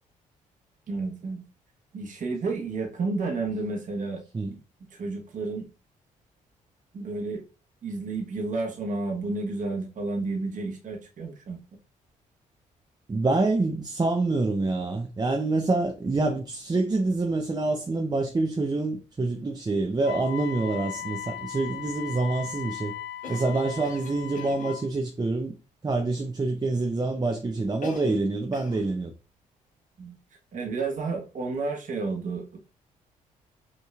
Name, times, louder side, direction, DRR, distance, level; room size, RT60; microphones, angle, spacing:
voice 1, 0.9-1.4 1.9-4.2 4.5-4.6 4.9-5.7 6.9-7.4 7.8-11.6 30.0-30.2 30.5-32.6, right 3 dB, 45° right, 1.2 m, -31 dB
voice 2, 13.1-22.9 23.3-25.5 25.8-29.1, right 3 dB, 25° right, 0.7 m, -26 dB
Wind instrument woodwind instrument, 20.0-24.9, left 12 dB, 75° left, 0.5 m, -38 dB
Cough, 23.2-24.8 27.8-28.3 28.5-28.9, left 2 dB, 50° left, 1.4 m, -41 dB
5.5 x 2.9 x 2.4 m
hypercardioid pair, 45°, 18 cm